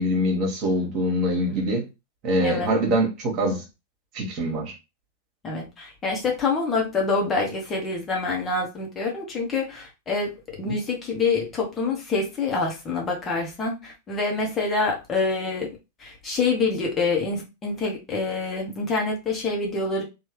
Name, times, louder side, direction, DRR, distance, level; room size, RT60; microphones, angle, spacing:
voice 1, 0.0-1.8 2.2-3.6 4.1-4.7 10.6-10.8, equal, 40° right, 0 dB, 1.5 m, -24 dB
voice 2, 2.4-2.7 5.4-10.3 10.6-15.7 16.0-20.0, left 4 dB, 20° left, -1 dB, 1.0 m, -26 dB
3.0 x 2.4 x 3.1 m, 0.26 s
figure-of-eight pair, 90°, 0 cm